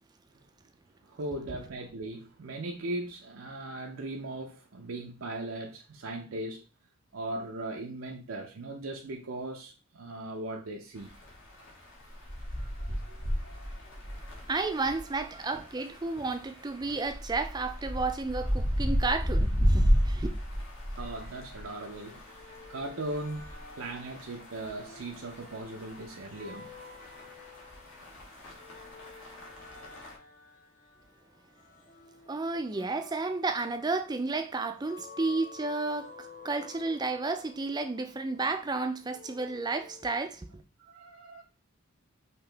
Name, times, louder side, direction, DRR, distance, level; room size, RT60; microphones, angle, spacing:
voice 1, 1.0-6.6 7.1-11.1 12.5-14.2 21.0-22.2 22.7-26.7 40.8-41.4, right 2 dB, 70° right, 0.6 m, -39 dB
sound 1, 11.0-30.2, equal, 65° left, 1.6 m, -33 dB
voice 2, 14.5-20.3 32.3-36.1 36.4-40.5, right 3 dB, 20° right, 0.4 m, -32 dB
sound 2, 21.0-40.2, left 4 dB, 35° left, 0.7 m, -52 dB
5.6 x 2.9 x 3.3 m
head